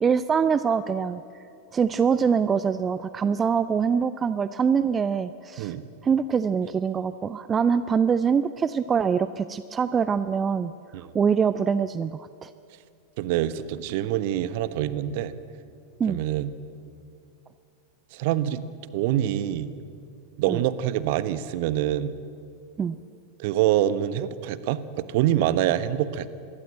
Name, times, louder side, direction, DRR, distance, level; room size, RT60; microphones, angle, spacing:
voice 1, 0.0-1.2 1.7-5.7 6.0-10.7 11.1-12.5 16.0-16.2 20.5-20.6 22.8-23.0, right 6 dB, 20° right, 14 dB, 0.6 m, -24 dB
voice 2, 13.2-15.3 16.1-16.5 18.1-18.6 18.9-19.7 20.4-22.2 23.4-26.3, right 12 dB, 50° right, 14 dB, 1.2 m, -25 dB
26.5 x 21.5 x 8.9 m, 2.4 s
figure-of-eight pair, 90°, 0 cm